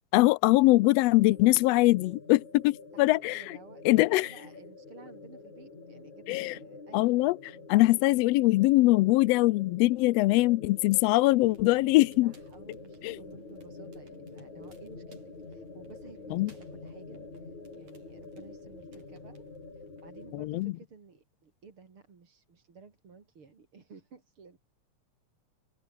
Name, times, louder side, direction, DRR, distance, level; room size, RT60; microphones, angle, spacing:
voice 1, 0.1-3.6 3.8-4.3 6.3-6.6 6.9-7.4 7.7-12.3 13.0-13.2 16.3-16.5 20.3-20.7, left 19 dB, 85° left, 1.4 m, -22 dB
sound 1, 0.6-20.4, left 3 dB, 65° left, 8.0 m, -47 dB
voice 2, 2.9-3.9 4.1-7.2 12.2-15.2 15.5-19.4 19.7-24.6, right 5 dB, 45° right, 3.9 m, -54 dB
Crackle, 11.3-20.7, right 3 dB, 75° right, 9.4 m, -59 dB
open air
omnidirectional pair, 3.4 m